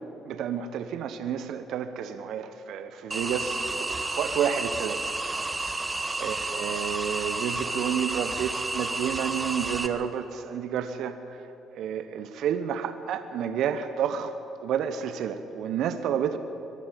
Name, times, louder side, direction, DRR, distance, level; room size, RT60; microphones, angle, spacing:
voice 1, 0.2-5.1 5.6-5.8 6.2-11.5 11.7-14.3 14.6-16.4, right 8 dB, 65° right, 10 dB, 1.0 m, -30 dB
sound 1, 3.1-9.9, right 2 dB, 20° right, 1.8 m, -31 dB
23.0 x 12.0 x 9.9 m, 2.8 s
hypercardioid pair, 50°, 0 cm